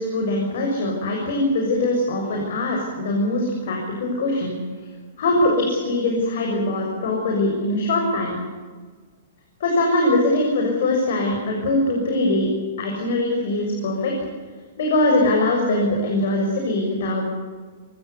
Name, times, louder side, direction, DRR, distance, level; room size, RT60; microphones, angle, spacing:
voice 1, 0.0-4.5 5.2-8.3 9.6-12.5 12.8-14.1 14.8-17.3, left 2 dB, 60° left, 0 dB, 6.8 m, -22 dB
24.5 x 19.0 x 8.3 m, 1.5 s
hypercardioid pair, 165°, 0 cm